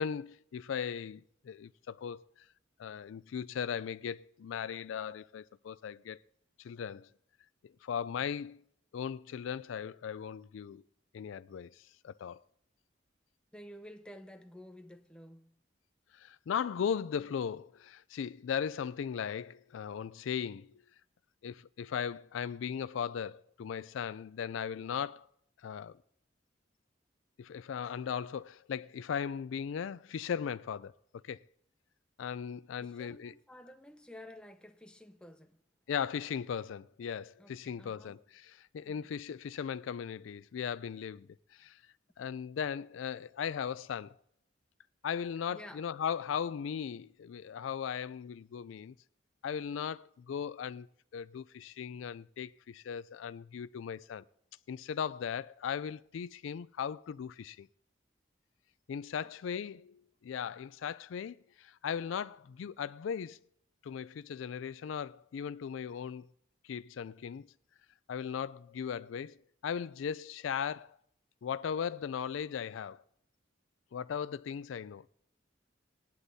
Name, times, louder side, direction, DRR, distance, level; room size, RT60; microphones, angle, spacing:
voice 1, 0.0-2.4 2.8-6.2 6.6-7.1 7.6-8.6 8.9-10.8 11.1-12.4 16.1-20.8 21.4-25.3 25.6-26.0 27.4-30.9 31.2-31.4 32.2-33.3 35.9-41.8 42.2-44.2 45.0-48.9 49.4-50.9 51.1-54.2 54.7-57.7 58.9-63.4 63.8-66.3 66.6-67.5 68.1-69.4 69.6-71.0 71.4-73.0 73.9-75.1, left 7 dB, 90° left, 0.4 m, -38 dB
voice 2, 13.5-15.6 32.8-35.6 37.4-38.2 38.8-39.2 45.5-45.9 59.2-59.3, left 1 dB, 5° left, 0.7 m, -52 dB
19.0 x 11.5 x 2.7 m
head